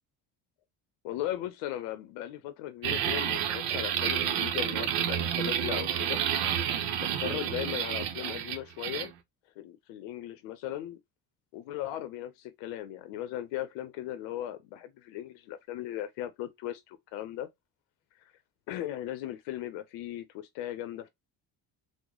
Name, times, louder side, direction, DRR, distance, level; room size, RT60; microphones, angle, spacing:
voice 1, 1.0-6.2 7.0-9.1 9.6-11.0 11.5-17.5 18.2-18.3 18.7-21.1, left 12 dB, 85° left, 0.6 m, -37 dB
sound 1, 2.8-9.1, right 9 dB, 85° right, 0.7 m, -30 dB
3.1 x 2.0 x 3.6 m
supercardioid pair, 85°, 43 cm